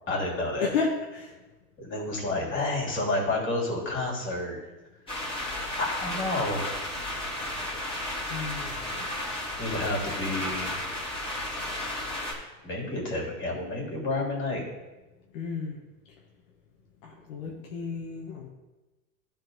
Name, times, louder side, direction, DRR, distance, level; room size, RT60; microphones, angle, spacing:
voice 1, 0.1-0.7 1.8-4.6 5.8-6.7 8.8-9.1 9.6-10.7 12.6-14.6, left 2 dB, 30° left, -2 dB, 3.0 m, -30 dB
voice 2, 0.6-1.3 8.3-8.7 15.3-15.8 17.0-18.5, left 5 dB, 65° left, -1 dB, 1.4 m, -32 dB
sound 1, 5.1-12.3, left 1 dB, 15° left, 2.6 m, -33 dB
12.0 x 4.4 x 3.9 m, 1.1 s
hypercardioid pair, 110°, 41 cm